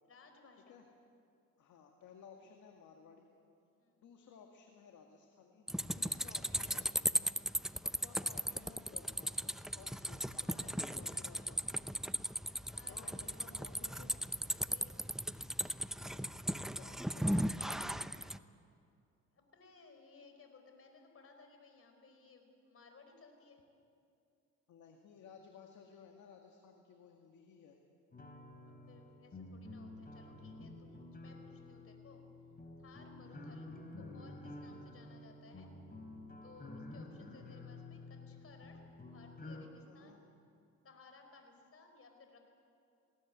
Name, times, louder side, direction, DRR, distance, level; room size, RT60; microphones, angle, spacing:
voice 1, 0.0-0.8 3.8-4.0 10.2-11.6 12.7-13.4 14.5-15.0 19.3-23.6 28.6-32.2 32.8-33.7 34.0-35.7 36.4-40.2 40.8-42.4, left 4 dB, 50° left, 5 dB, 4.5 m, -60 dB
voice 2, 1.6-3.3 3.9-5.7 5.9-7.3 7.8-11.7 12.8-14.2 15.9-18.4 24.7-27.8 33.2-33.5 37.1-37.3 39.9-40.2, left 6 dB, 75° left, 2 dB, 2.1 m, -58 dB
sound 1, 5.7-18.4, equal, ahead, 0.6 m, -37 dB
sound 2, 28.1-39.6, left 2 dB, 30° left, 3.7 m, -50 dB
20.5 x 18.0 x 9.5 m, 2.5 s
cardioid pair, 90°, 30 cm